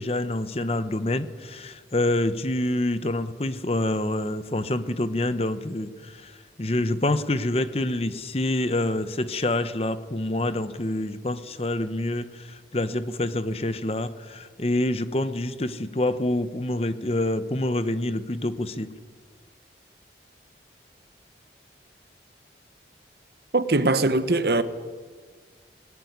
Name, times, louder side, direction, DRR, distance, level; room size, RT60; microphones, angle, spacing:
voice 1, 0.0-6.3 6.6-18.9, left 1 dB, 35° left, 0.9 m, -27 dB
voice 2, 23.5-24.6, right 2 dB, 60° right, 1.2 m, -21 dB
18.5 x 18.5 x 9.6 m
head